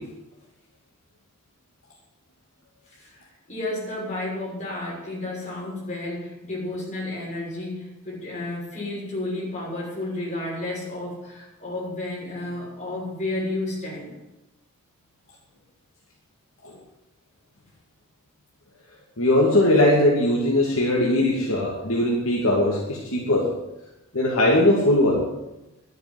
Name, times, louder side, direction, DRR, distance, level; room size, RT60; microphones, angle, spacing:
voice 1, 2.9-14.1, left 2 dB, 35° left, -5 dB, 6.7 m, -32 dB
voice 2, 19.2-23.5 24.1-25.2, left 1 dB, 65° left, -3 dB, 2.6 m, -20 dB
12.0 x 9.3 x 9.8 m, 0.94 s
head